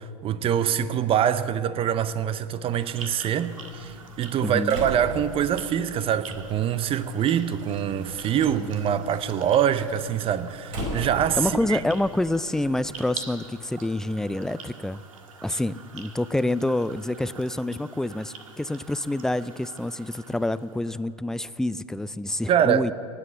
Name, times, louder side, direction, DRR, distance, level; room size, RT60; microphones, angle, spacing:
voice 1, 0.0-11.8 15.5-15.6 22.5-22.9, right 9 dB, 35° right, 0.7 m, -24 dB
sound 1, 2.6-21.0, right 5 dB, 85° right, 1.7 m, -45 dB
Slam, 3.6-13.1, equal, 60° right, 4.3 m, -40 dB
voice 2, 4.4-4.9 8.6-8.7 11.3-15.0 15.4-22.9, left 1 dB, 5° left, 0.3 m, -27 dB
19.0 x 7.7 x 7.0 m
hypercardioid pair, 95°, 17 cm